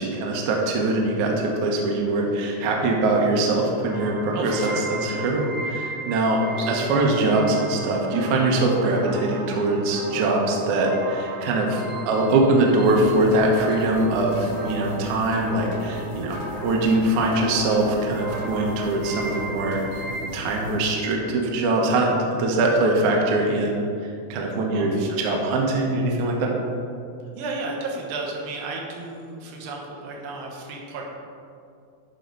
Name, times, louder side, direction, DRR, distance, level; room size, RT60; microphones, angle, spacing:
voice 1, 0.0-6.4 6.7-16.3 16.6-19.8 20.3-23.9 24.3-26.5, right 2 dB, 90° right, 0 dB, 1.7 m, -22 dB
sound 1, 3.9-20.2, right 2 dB, 55° right, 2.4 m, -36 dB
voice 2, 4.3-5.3 6.6-6.8 24.7-25.2 27.4-31.1, right 3 dB, 75° right, -1 dB, 3.1 m, -33 dB
sound 2, 12.8-20.8, left 3 dB, 80° left, 2.9 m, -37 dB
10.5 x 4.5 x 5.2 m, 2.4 s
omnidirectional pair, 5.1 m